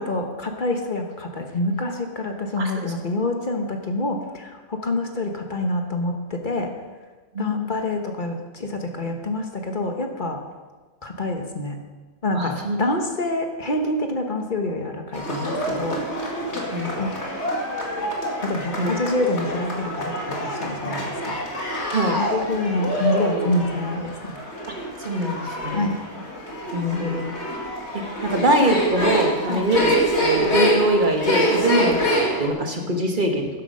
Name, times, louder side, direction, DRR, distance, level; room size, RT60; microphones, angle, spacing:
voice 1, 0.0-6.7 7.4-10.4 11.0-11.8 12.2-16.0 17.0-17.1 18.4-21.4 22.2-24.4 25.7-26.0 29.5-29.7, left 2 dB, 40° left, 4 dB, 1.4 m, -26 dB
voice 2, 2.6-2.9 7.3-7.6 12.3-12.8 16.7-16.9 18.8-18.9 21.9-22.2 24.7-24.8 25.0-25.9 26.7-27.3 27.9-33.5, right 1 dB, 40° right, 3 dB, 1.6 m, -23 dB
sound 1, 15.1-32.5, equal, 65° left, 2.4 m, -26 dB
13.0 x 10.0 x 5.5 m, 1.3 s
omnidirectional pair, 1.2 m